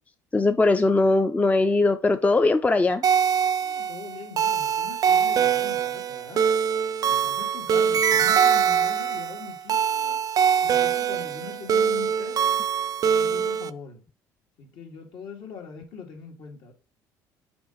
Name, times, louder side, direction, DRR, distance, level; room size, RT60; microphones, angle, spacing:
voice 1, 0.3-3.0, left 3 dB, 15° left, 0.5 m, -20 dB
sound 1, 3.0-13.7, right 7 dB, 45° right, 0.4 m, -23 dB
voice 2, 3.6-6.4 7.1-10.2 10.6-12.5 13.0-14.0 14.6-16.7, left 6 dB, 65° left, 2.0 m, -42 dB
6.0 x 4.4 x 3.8 m
supercardioid pair, 70°, 9 cm